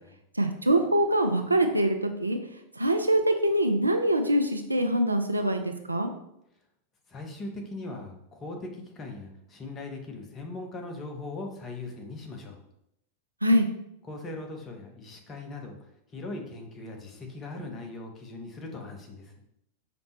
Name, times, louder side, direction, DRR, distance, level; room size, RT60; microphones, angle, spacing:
voice 1, 0.3-2.4 2.8-6.1 13.4-13.7, right 1 dB, 85° right, 5 dB, 0.3 m, -24 dB
voice 2, 7.1-12.6 14.1-15.8 16.1-19.3, left 2 dB, 25° left, 2 dB, 0.7 m, -39 dB
5.0 x 2.1 x 2.9 m, 0.79 s
figure-of-eight pair, 90°, 0 cm